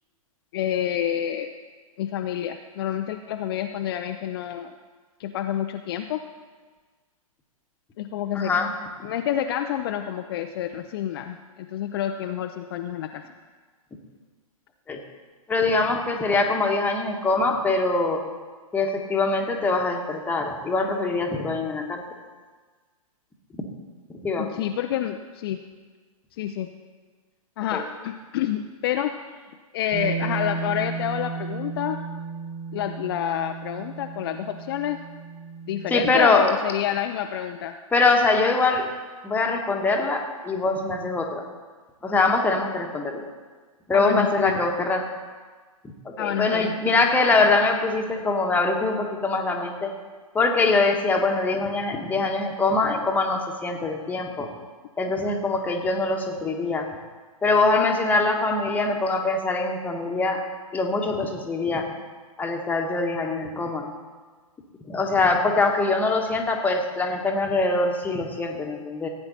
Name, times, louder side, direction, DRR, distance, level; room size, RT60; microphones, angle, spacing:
voice 1, 0.5-1.5 2.0-4.7 5.2-6.2 8.0-8.5 9.0-13.2 24.4-25.6 26.3-26.7 27.6-29.1 29.7-32.0 32.7-35.0 35.7-37.8 43.9-44.6 46.2-46.7, left 10 dB, 40° left, 5 dB, 0.6 m, -28 dB
voice 2, 8.3-8.7 14.9-15.0 15.5-18.2 18.7-22.0 24.1-24.5 27.7-27.8 35.9-36.5 37.9-38.9 39.2-41.4 42.0-43.2 43.9-45.0 46.0-49.9 50.3-54.5 55.0-56.9 57.4-60.4 60.7-61.8 62.4-63.9 64.9-69.1, left 3 dB, 10° left, 2 dB, 1.3 m, -23 dB
Bass guitar, 29.9-36.2, right 5 dB, 30° right, 4.0 m, -34 dB
16.0 x 8.9 x 4.1 m, 1.4 s
figure-of-eight pair, 115°, 19 cm